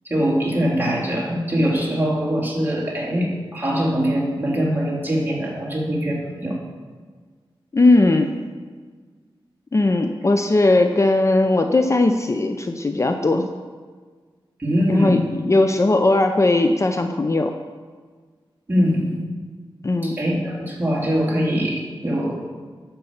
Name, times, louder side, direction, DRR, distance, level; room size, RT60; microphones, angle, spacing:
voice 1, 0.0-6.6 14.6-15.2 18.7-19.2 20.0-22.4, equal, 25° right, -3 dB, 3.0 m, -22 dB
voice 2, 7.7-8.3 9.7-13.5 14.9-17.5 19.8-20.2, left 2 dB, 35° left, 6 dB, 0.6 m, -18 dB
12.0 x 5.5 x 7.2 m, 1.5 s
wide cardioid pair, 85°, 9 cm